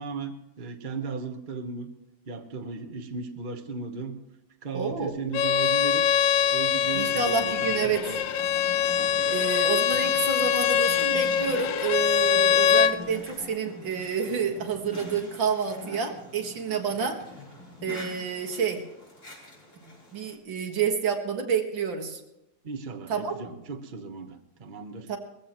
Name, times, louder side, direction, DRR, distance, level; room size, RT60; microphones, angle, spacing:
voice 1, 0.0-1.9 2.3-4.2 4.6-6.0 6.5-8.2 9.1-9.5 9.9-10.0 22.6-25.2, right 4 dB, 30° right, 5 dB, 1.2 m, -36 dB
voice 2, 4.7-5.1 6.9-8.0 9.3-17.2 17.8-18.8 20.1-22.2 23.1-23.4 25.1-25.2, right 6 dB, 80° right, 4 dB, 2.4 m, -29 dB
Bowed string instrument, 5.3-13.0, left 8 dB, 80° left, 1.3 m, -23 dB
sound 1, 6.8-20.3, left 2 dB, 50° left, 4.2 m, -45 dB
20.5 x 15.0 x 3.1 m, 0.89 s
omnidirectional pair, 2.0 m